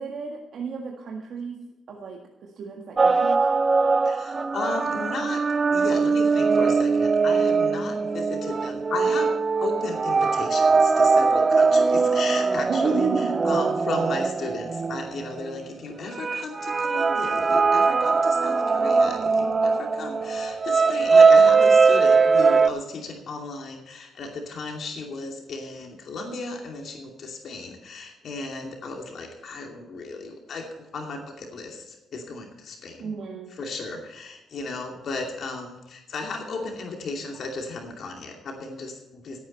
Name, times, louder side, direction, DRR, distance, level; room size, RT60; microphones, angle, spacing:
voice 1, 0.0-1.6 1.9-3.5 5.8-5.9 12.7-13.4 33.0-33.5, right 5 dB, 60° right, 1 dB, 1.7 m, -31 dB
sound 1, 3.0-15.5 16.2-22.7, right 4 dB, 30° right, 0.5 m, -21 dB
voice 2, 4.0-5.4 5.7-9.3 9.6-33.1 33.5-39.4, left 3 dB, 60° left, 2 dB, 2.6 m, -35 dB
17.0 x 9.4 x 4.2 m, 1.0 s
cardioid pair, 90°, 0 cm